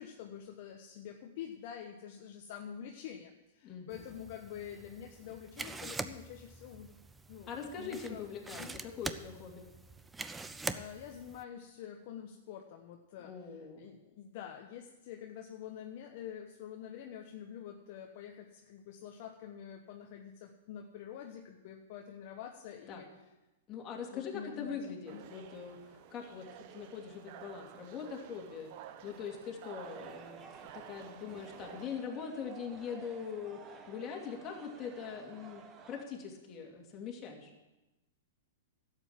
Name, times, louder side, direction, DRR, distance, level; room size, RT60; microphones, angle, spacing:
voice 1, 0.0-7.0 7.3-7.5 7.8-8.3 8.6-8.8 10.5-23.1 24.1-24.8 25.1-25.2, left 9 dB, 55° left, 3 dB, 1.1 m, -47 dB
voice 2, 3.6-4.0 7.5-9.7 13.2-13.8 22.9-23.0 23.7-28.7 29.0-30.4 30.7-37.5, left 6 dB, 30° left, 0 dB, 2.8 m, -42 dB
sound 1, 3.9-11.4, right 3 dB, 10° right, 0.6 m, -44 dB
sound 2, 25.1-31.9, right 10 dB, 50° right, 0.9 m, -52 dB
sound 3, 29.8-36.0, right 6 dB, 30° right, 1.3 m, -53 dB
12.0 x 8.1 x 7.4 m, 1.0 s
hypercardioid pair, 120°, 0 cm